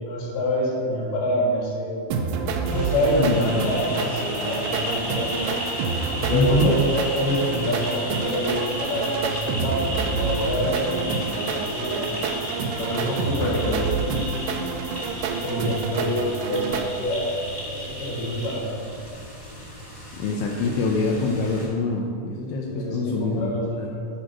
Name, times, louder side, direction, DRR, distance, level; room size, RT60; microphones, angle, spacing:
voice 1, 0.0-2.0 2.7-5.4 6.2-12.1 12.8-14.4 15.4-18.8 22.7-24.1, equal, 60° left, -5 dB, 3.9 m, -27 dB
sound 1, 2.1-16.9, right 5 dB, 85° right, 2.7 m, -28 dB
sound 2, 2.6-21.6, left 1 dB, 40° left, 0.4 m, -34 dB
voice 2, 3.2-3.7 6.3-6.7 13.4-13.9 20.1-23.9, left 3 dB, 80° left, -1 dB, 2.5 m, -25 dB
11.5 x 4.6 x 5.9 m, 2.3 s
omnidirectional pair, 5.2 m